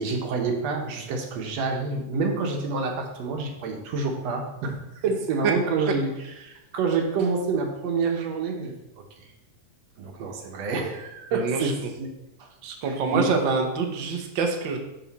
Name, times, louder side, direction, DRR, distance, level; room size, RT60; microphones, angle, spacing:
voice 1, 0.0-6.1 6.4-9.3 10.0-12.1 12.4-12.5 12.9-13.2, right 4 dB, 65° right, 3 dB, 1.9 m, -28 dB
voice 2, 11.3-11.9 12.6-14.8, right 4 dB, 85° right, 3 dB, 1.0 m, -26 dB
12.0 x 4.3 x 4.1 m, 0.94 s
omnidirectional pair, 3.6 m